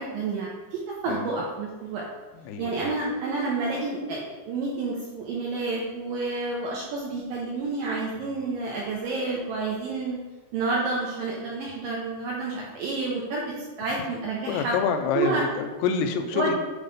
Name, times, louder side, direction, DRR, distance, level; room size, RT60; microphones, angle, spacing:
voice 1, 0.0-2.1 2.6-10.2 10.5-13.4 13.8-14.7 15.2-15.4 16.3-16.5, right 3 dB, 75° right, -3 dB, 2.1 m, -29 dB
voice 2, 2.3-2.9 14.5-16.6, left 6 dB, 85° left, 6 dB, 2.7 m, -27 dB
8.3 x 4.1 x 5.2 m, 1.3 s
omnidirectional pair, 5.1 m